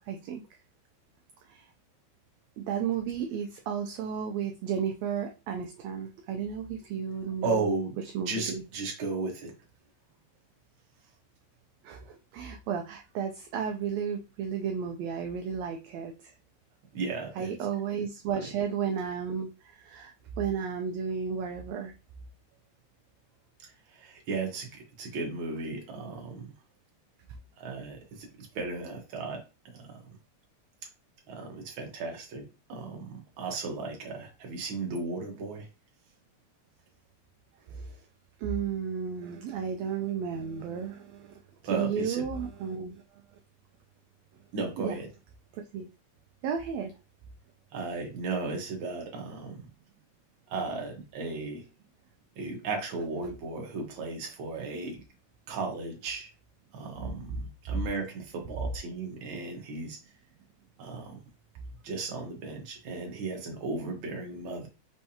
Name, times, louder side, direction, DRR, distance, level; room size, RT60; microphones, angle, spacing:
voice 1, 0.1-0.4 1.5-1.6 2.6-7.7 8.1-8.6 11.8-16.3 17.4-20.1 20.4-21.9 37.7-37.9 38.4-41.3 41.7-43.0 44.8-45.0 45.5-45.9 46.4-46.9 57.7-57.8, right 7 dB, 80° right, 4 dB, 1.6 m, -33 dB
voice 2, 7.4-8.0 8.3-9.5 16.9-17.6 18.3-18.5 23.6-26.5 27.6-29.4 29.7-29.9 31.3-35.6 41.6-42.2 44.5-45.1 47.7-49.6 50.5-51.6 52.4-55.0 55.5-56.3 56.7-60.0 60.8-61.2 61.8-64.7, right 3 dB, 55° right, 1 dB, 1.7 m, -35 dB
5.3 x 3.4 x 2.8 m, 0.29 s
omnidirectional pair, 3.5 m